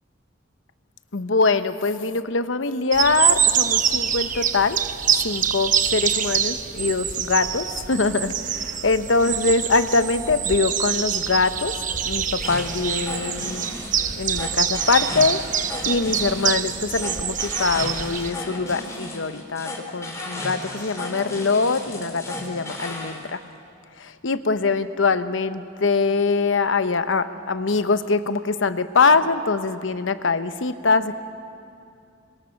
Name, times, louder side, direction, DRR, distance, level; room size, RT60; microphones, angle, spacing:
voice 1, 1.1-4.8 5.2-11.7 12.0-13.6 14.2-15.4 15.9-23.4 24.0-31.2, left 4 dB, 80° left, 11 dB, 0.9 m, -23 dB
sound 1, 2.9-18.3, right 8 dB, 45° right, 0.9 m, -25 dB
sound 2, 12.4-23.2, left 2 dB, 15° left, 3.5 m, -34 dB
27.5 x 22.5 x 6.5 m, 2.5 s
head